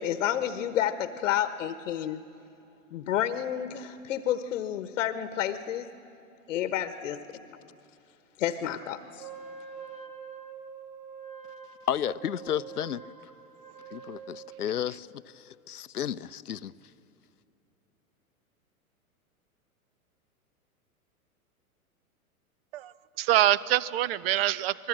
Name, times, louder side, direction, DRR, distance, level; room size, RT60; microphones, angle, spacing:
voice 1, 0.0-2.2 2.9-5.9 6.5-7.5 8.4-9.3, left 10 dB, 55° left, 1.1 m, -30 dB
Wind instrument woodwind instrument, 9.2-14.8, right 7 dB, 15° right, 1.7 m, -45 dB
voice 2, 11.9-13.3 13.9-16.7, left 9 dB, 80° left, 0.7 m, -33 dB
voice 3, 22.7-24.9, right 14 dB, 40° right, 0.7 m, -25 dB
27.5 x 21.0 x 7.4 m
figure-of-eight pair, 105°, 44 cm